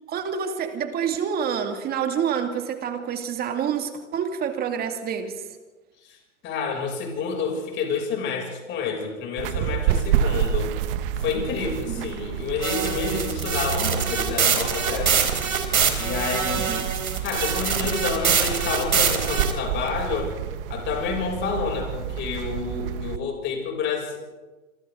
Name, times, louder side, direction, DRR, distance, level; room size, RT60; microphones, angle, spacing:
voice 1, 0.1-5.5 11.9-12.1 16.6-16.9, right 7 dB, 20° right, 6 dB, 2.5 m, -28 dB
voice 2, 6.4-10.8 11.2-15.2 16.0-16.8 17.2-20.3 20.7-24.2, left 5 dB, 30° left, 1 dB, 6.9 m, -29 dB
sound 1, 9.4-23.2, right 9 dB, 45° right, 1.3 m, -29 dB
sound 2, 12.6-19.5, right 6 dB, 85° right, 3.8 m, -24 dB
27.0 x 25.0 x 3.9 m, 1.2 s
hypercardioid pair, 130°, 41 cm